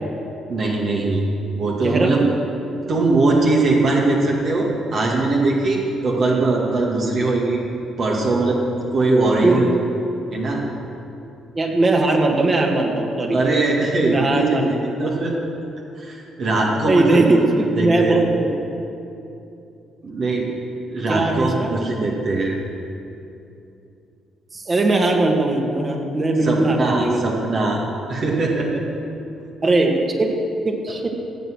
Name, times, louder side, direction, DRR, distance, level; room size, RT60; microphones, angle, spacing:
voice 1, 0.5-1.2 1.5-2.2 2.9-7.6 8.0-8.6 8.9-9.7 10.3-10.6 13.3-14.6 15.0-15.3 16.0-17.4 17.7-18.2 20.0-20.5 20.9-22.6 26.4-27.8 28.1-28.8, right 2 dB, 55° right, -2 dB, 2.2 m, -20 dB
voice 2, 11.5-13.4 14.1-14.8 15.2-15.3 16.9-18.4 21.1-21.7 24.5-27.3 29.6-30.3 30.6-31.1, right 2 dB, 35° right, 1 dB, 2.2 m, -19 dB
16.0 x 8.1 x 6.3 m, 2.8 s
hypercardioid pair, 45°, 0 cm